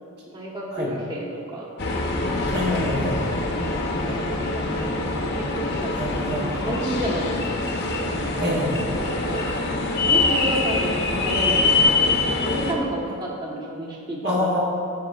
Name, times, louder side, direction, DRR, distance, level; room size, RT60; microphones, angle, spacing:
voice 1, 0.3-1.7 3.9-6.0 6.3-7.5 9.0-9.4 10.1-14.5, right 1 dB, 20° right, -3 dB, 1.2 m, -31 dB
sound 1, 1.8-12.7, left 3 dB, 50° left, 0.9 m, -24 dB
voice 2, 2.5-3.2 6.0-6.4 8.4-8.8 14.2-14.6, left 1 dB, 50° right, -4 dB, 1.9 m, -25 dB
16.5 x 5.6 x 2.4 m, 2.5 s
head